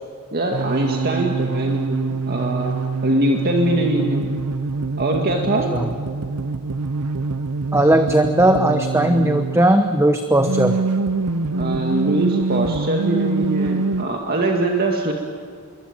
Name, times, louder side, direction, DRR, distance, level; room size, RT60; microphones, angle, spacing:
voice 1, 0.3-2.8 3.0-4.3 5.0-5.7 11.5-15.1, right 1 dB, 45° right, 2 dB, 2.1 m, -22 dB
sound 1, 0.5-9.7 10.3-14.0, right 3 dB, 85° right, 0.8 m, -25 dB
voice 2, 7.7-10.8, right 1 dB, 10° right, 7 dB, 1.0 m, -17 dB
26.5 x 23.0 x 9.0 m, 2.1 s
head